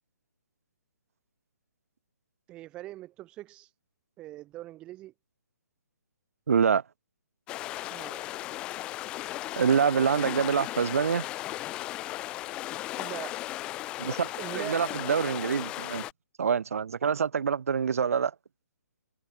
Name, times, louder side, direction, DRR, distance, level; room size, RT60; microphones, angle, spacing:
voice 1, 2.5-3.7 4.2-5.1 7.9-8.4 12.9-13.4 14.4-15.0, right 16 dB, 10° right, 1.1 m, -42 dB
voice 2, 6.5-6.8 9.6-11.3 14.0-14.3 14.5-16.0 16.4-18.3, right 6 dB, 50° right, 1.6 m, -26 dB
sound 1, 7.5-16.1, left 16 dB, 10° left, 1.0 m, -36 dB
hypercardioid pair, 175°, 10 cm